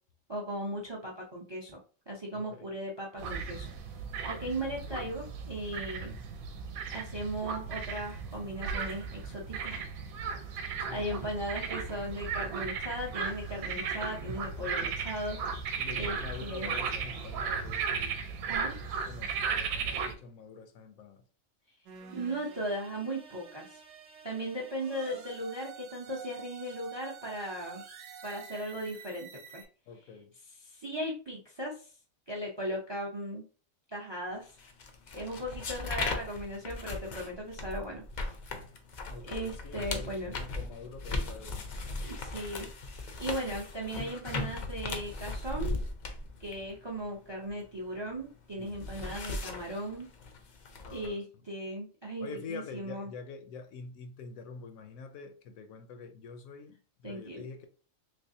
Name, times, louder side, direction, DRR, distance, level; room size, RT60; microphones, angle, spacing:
voice 1, 0.3-1.8 2.1-3.7 4.2-6.1 6.9-9.9 10.6-15.6 16.0-16.8 18.5-18.8 22.1-23.8 24.2-27.8 28.2-29.3 29.5-29.6 30.5-31.9 32.3-33.4 33.9-34.6 35.1-38.3 39.3-40.3 42.1-42.7 43.2-45.7 46.4-50.1 50.9-53.1 57.0-57.5, right 1 dB, 35° right, 0.4 m, -37 dB
voice 2, 2.3-2.7 4.3-4.5 10.9-11.1 15.8-18.4 18.8-21.2 29.9-30.3 39.1-41.7 48.6-48.8 50.7-51.2 52.2-57.7, left 5 dB, 80° left, 1.0 m, -46 dB
sound 1, 3.2-20.1, right 5 dB, 90° right, 1.0 m, -36 dB
sound 2, 21.9-29.6, right 6 dB, 65° right, 1.0 m, -49 dB
sound 3, 34.6-48.1 48.4-51.1, left 2 dB, 55° left, 0.5 m, -38 dB
3.2 x 3.2 x 2.7 m
omnidirectional pair, 1.4 m